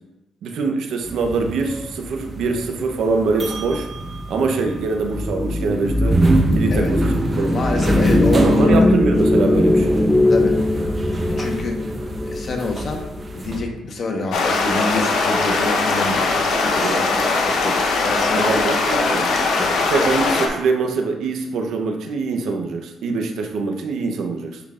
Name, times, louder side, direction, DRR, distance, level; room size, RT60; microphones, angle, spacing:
voice 1, 0.4-3.9 4.3-6.2 6.5-7.5 8.3-10.0 16.8-17.0 18.4-19.3 19.9-24.6, right 4 dB, 75° right, 3 dB, 0.8 m, -23 dB
sound 1, 1.0-13.6, right 2 dB, 30° right, 0.9 m, -25 dB
sound 2, 5.0-13.4, left 2 dB, 5° left, 0.4 m, -20 dB
voice 2, 7.5-8.9 10.3-10.6 11.3-11.8 12.2-13.0 13.3-18.7 19.2-19.8, left 2 dB, 50° left, 2 dB, 1.1 m, -27 dB
sound 3, 14.3-20.5, left 3 dB, 75° left, 0.9 m, -20 dB
10.0 x 3.8 x 2.5 m, 0.98 s
cardioid pair, 90°, 0 cm